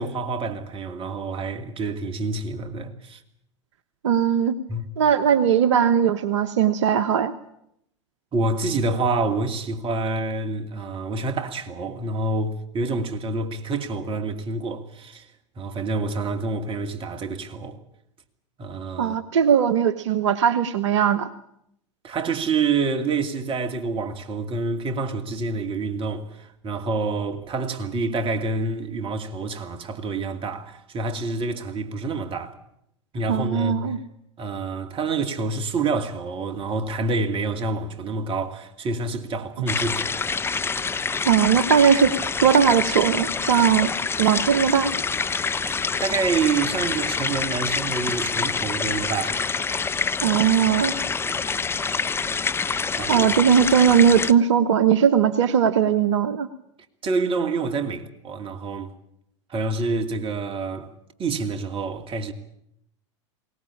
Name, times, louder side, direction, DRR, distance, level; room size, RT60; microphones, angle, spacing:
voice 1, 0.0-3.2 4.7-4.9 8.3-15.3 15.6-17.8 18.6-19.2 22.0-32.5 33.1-33.9 34.4-40.1 40.9-41.1 45.7-49.5 51.3-51.5 53.0-53.3 57.0-58.9 59.5-60.9 61.2-62.3, right 3 dB, 35° right, 2.7 m, -27 dB
voice 2, 4.0-4.5 5.0-7.3 19.0-21.3 33.3-34.0 41.2-42.1 42.4-43.9 44.2-44.9 50.2-50.9 53.1-56.5, right 8 dB, 70° right, 1.2 m, -19 dB
sound 1, 39.7-54.3, left 5 dB, 15° left, 0.8 m, -26 dB
21.5 x 18.5 x 8.7 m
hypercardioid pair, 90°, 16 cm